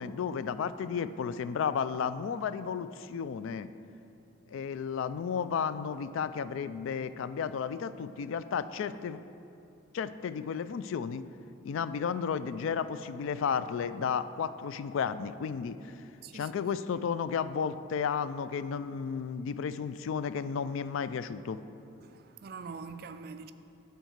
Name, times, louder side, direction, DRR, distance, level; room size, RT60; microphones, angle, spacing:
voice 1, 0.0-3.7 4.5-9.2 9.9-11.2 11.6-15.9 16.3-21.6, left 6 dB, 75° left, 0.3 m, -33 dB
voice 2, 22.0-23.5, right 5 dB, 45° right, 0.3 m, -44 dB
9.1 x 4.6 x 6.6 m
head